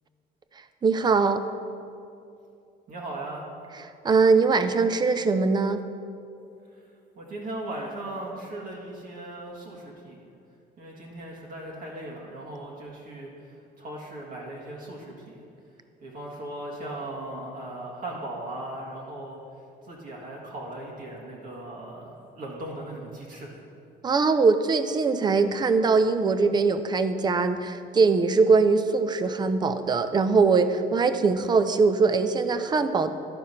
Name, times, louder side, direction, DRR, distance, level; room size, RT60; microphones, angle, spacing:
voice 1, 0.8-1.4 4.0-5.8 24.0-33.1, right 4 dB, 25° right, 10 dB, 0.5 m, -22 dB
voice 2, 2.9-3.4 6.7-6.8 7.2-10.3 10.8-15.4 16.0-19.4 19.9-23.5, right 1 dB, 55° right, -3 dB, 1.8 m, -38 dB
11.5 x 4.7 x 5.6 m, 2.5 s
cardioid pair, 110°, 17 cm